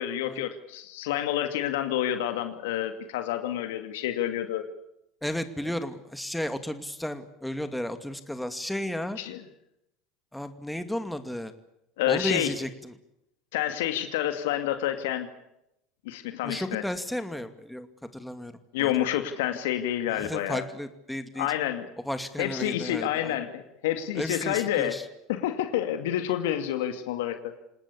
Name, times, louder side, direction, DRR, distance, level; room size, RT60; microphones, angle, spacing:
voice 1, 0.0-4.7 9.2-9.4 12.0-12.5 13.5-15.3 16.0-16.8 18.7-20.6 21.4-21.9 22.4-25.0 25.3-27.5, left 11 dB, 75° left, 8 dB, 2.3 m, -28 dB
voice 2, 5.2-9.2 10.3-11.5 12.1-12.9 16.4-19.0 20.1-21.5 22.0-23.4 24.1-25.1, left 1 dB, 5° left, 9 dB, 2.5 m, -33 dB
27.5 x 19.0 x 8.5 m, 0.83 s
hypercardioid pair, 80°, 0 cm